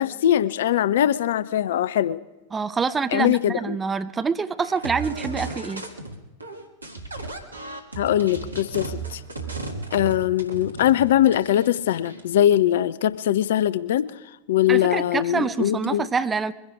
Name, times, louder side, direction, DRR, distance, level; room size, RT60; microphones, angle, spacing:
voice 1, 0.0-2.2 3.1-3.8 8.0-9.2 9.9-14.1 14.5-16.0, left 11 dB, 60° left, 17 dB, 0.4 m, -21 dB
voice 2, 2.5-5.8 14.7-16.5, right 5 dB, 15° right, 12 dB, 0.7 m, -26 dB
sound 1, 4.6-6.2 6.4-12.4, right 3 dB, 80° right, 1.6 m, -35 dB
22.5 x 10.5 x 4.9 m, 1.1 s
figure-of-eight pair, 90°, 0 cm